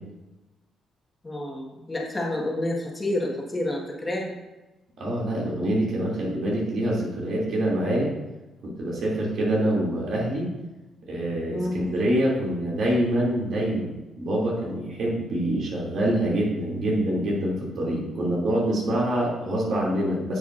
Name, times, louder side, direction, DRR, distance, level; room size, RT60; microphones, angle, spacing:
voice 1, 1.2-4.3 11.5-11.8, left 1 dB, 20° left, -1 dB, 1.7 m, -29 dB
voice 2, 5.0-8.1 8.6-10.5 11.0-13.9 14.2-20.4, right 1 dB, 65° right, -4 dB, 2.9 m, -25 dB
9.5 x 7.2 x 2.6 m, 1.1 s
cardioid pair, 90°, 0 cm